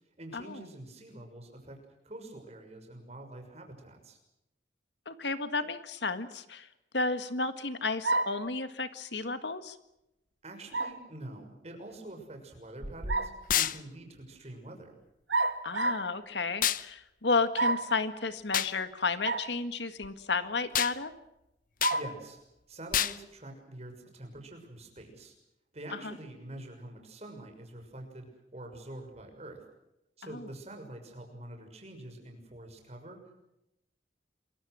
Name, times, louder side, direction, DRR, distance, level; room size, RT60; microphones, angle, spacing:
voice 1, 0.2-1.8 2.0-4.2 10.4-14.9 21.9-22.4 22.7-25.3 25.7-29.6 30.2-33.2, right 1 dB, 35° right, 4 dB, 6.4 m, -46 dB
voice 2, 5.1-6.7 6.9-9.8 15.6-21.1 26.0-26.1 30.3-30.4, left 3 dB, 70° left, 10 dB, 1.8 m, -32 dB
sound 1, 8.0-8.5 10.7-11.0 12.8-13.4 15.3-16.1 17.5-18.0 19.2-19.5 20.0-20.1 21.8-22.2, right 2 dB, 85° right, 2.3 m, -29 dB
sound 2, 13.5-13.8 16.6-16.8 18.5-18.7 20.7-21.0 21.8-22.0 22.9-23.2, left 10 dB, 50° left, 0.9 m, -27 dB
27.5 x 23.0 x 6.3 m, 0.88 s
head